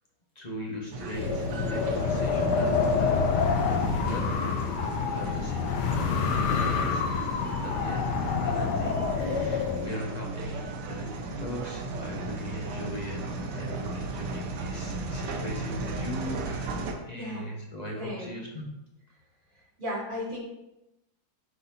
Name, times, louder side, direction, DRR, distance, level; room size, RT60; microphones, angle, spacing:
voice 1, 0.3-4.7 5.1-16.7 17.0-18.7, equal, 30° left, -2 dB, 1.0 m, -40 dB
sound 1, 0.9-16.9, right 3 dB, 80° right, 1.5 m, -36 dB
Wind, 1.1-9.8, left 5 dB, 75° left, 1.3 m, -27 dB
voice 2, 17.1-17.5 18.0-18.4 19.8-20.4, equal, 30° right, -7 dB, 2.6 m, -35 dB
10.5 x 4.0 x 2.8 m, 0.93 s
omnidirectional pair, 1.9 m